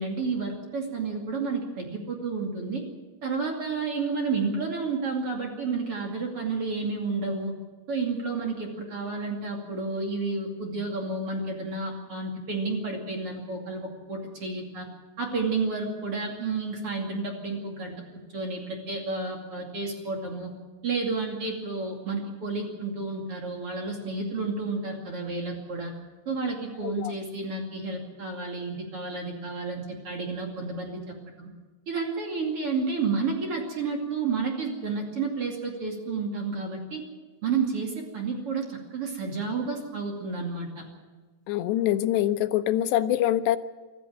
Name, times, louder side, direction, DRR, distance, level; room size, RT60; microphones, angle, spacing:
voice 1, 0.0-2.8 3.2-7.5 7.9-14.9 15.2-17.9 18.3-20.5 20.8-25.9 26.3-31.5 31.9-37.0 37.4-40.9, right 4 dB, 40° right, 1 dB, 2.9 m, -31 dB
voice 2, 41.5-43.6, left 12 dB, 90° left, 10 dB, 3.0 m, -24 dB
25.0 x 14.0 x 7.5 m, 1.3 s
omnidirectional pair, 4.8 m